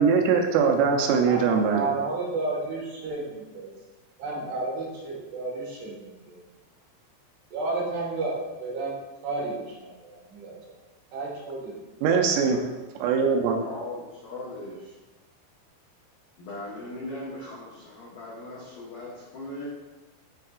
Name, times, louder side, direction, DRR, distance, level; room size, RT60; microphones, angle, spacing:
voice 1, 0.0-1.8 12.0-12.6 13.0-13.6, right 5 dB, 85° right, 2 dB, 3.2 m, -21 dB
voice 2, 1.2-3.7 4.2-6.4 7.5-9.0 9.2-10.8 11.1-12.0, right 3 dB, 65° right, -5 dB, 3.2 m, -32 dB
voice 3, 13.6-15.0 16.4-19.7, left 2 dB, 75° left, -7 dB, 2.0 m, -39 dB
12.0 x 4.6 x 2.4 m, 1.1 s
omnidirectional pair, 5.9 m